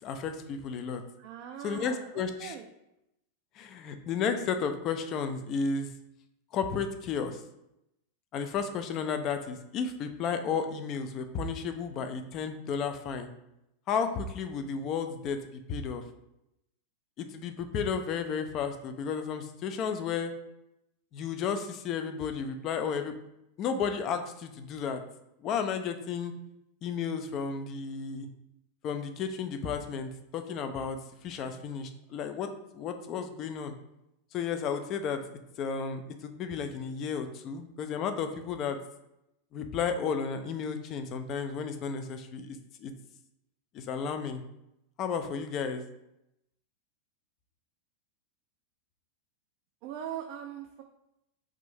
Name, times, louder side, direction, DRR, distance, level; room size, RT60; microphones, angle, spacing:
voice 1, 0.0-1.0 1.6-2.5 3.6-5.9 6.5-7.4 8.3-13.3 13.9-15.4 15.7-16.0 17.2-20.3 21.1-23.2 23.6-25.0 25.4-26.3 26.8-28.3 28.8-32.5 32.7-33.7 34.3-35.2 35.6-38.8 39.5-42.9 43.7-44.4 45.0-45.8, left 6 dB, 35° left, 8 dB, 0.4 m, -33 dB
voice 2, 1.2-2.7 49.8-50.8, right 9 dB, 45° right, 3 dB, 0.3 m, -41 dB
3.6 x 2.5 x 4.2 m, 0.85 s
figure-of-eight pair, 90°, 0 cm